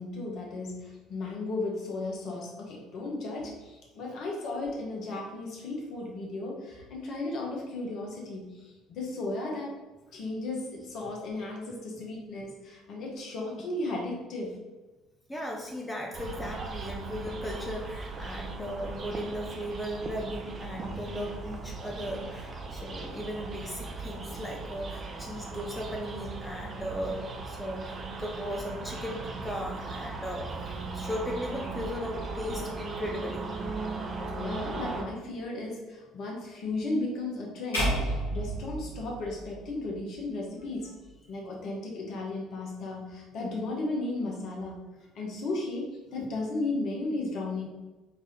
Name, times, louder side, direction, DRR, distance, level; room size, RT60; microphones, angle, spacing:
voice 1, 0.0-9.7 10.1-14.6 34.3-40.9 41.3-44.8 45.1-47.7, left 2 dB, 50° left, -1 dB, 1.1 m, -35 dB
voice 2, 15.3-30.5 30.9-33.5, equal, 15° left, -1 dB, 0.7 m, -37 dB
sound 1, 16.1-35.0, right 3 dB, 35° right, 0.7 m, -38 dB
sound 2, 37.7-40.0, right 1 dB, 75° left, 1.3 m, -31 dB
4.8 x 2.9 x 3.7 m, 1.2 s
figure-of-eight pair, 55°, 0 cm